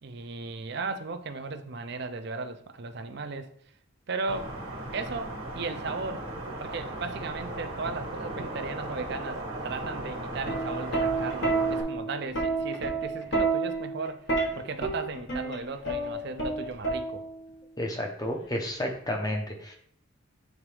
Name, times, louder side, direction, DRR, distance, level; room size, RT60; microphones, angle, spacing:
voice 1, 0.0-3.5 4.1-4.6 4.9-6.2 6.6-14.3 14.5-17.2, right 4 dB, 50° right, 8 dB, 0.5 m, -36 dB
sound 1, 4.3-11.8, right 1 dB, 85° right, 1.3 m, -36 dB
Plucked string instrument, 10.3-17.5 18.6-18.9, right 3 dB, 55° left, 1.3 m, -29 dB
voice 2, 17.8-19.7, left 1 dB, 20° left, 2 dB, 0.7 m, -31 dB
7.3 x 3.9 x 3.3 m, 0.65 s
head